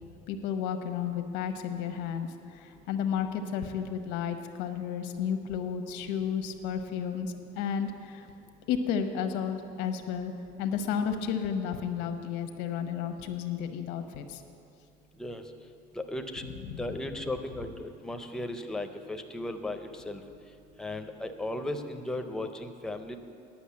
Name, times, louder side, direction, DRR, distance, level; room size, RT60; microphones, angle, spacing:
voice 1, 0.3-8.3 8.7-10.3 10.6-14.4 16.7-17.0, left 7 dB, 90° left, 7 dB, 0.9 m, -32 dB
voice 2, 16.0-16.4 16.8-20.2 20.8-23.2, left 1 dB, 5° left, 6 dB, 0.5 m, -36 dB
10.0 x 6.2 x 8.4 m, 2.5 s
cardioid pair, 160°, 18 cm